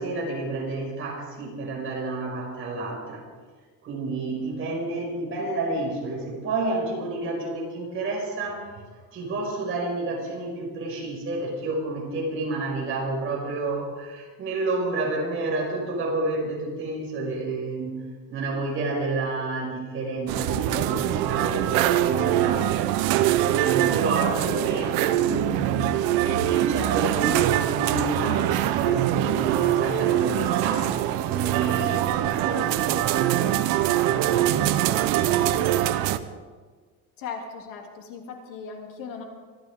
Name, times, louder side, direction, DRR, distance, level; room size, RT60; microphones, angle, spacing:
voice 1, 0.0-3.3 3.8-8.7 9.1-18.0 18.3-22.9 23.5-26.0 26.4-30.9 31.3-33.5 34.2-35.2, right 2 dB, 35° right, -2 dB, 5.5 m, -30 dB
sound 1, 20.3-36.2, right 12 dB, 70° right, 0.9 m, -23 dB
voice 2, 37.2-39.2, left 5 dB, 60° left, 1 dB, 3.0 m, -38 dB
25.0 x 14.0 x 3.7 m, 1.5 s
cardioid pair, 175°, 37 cm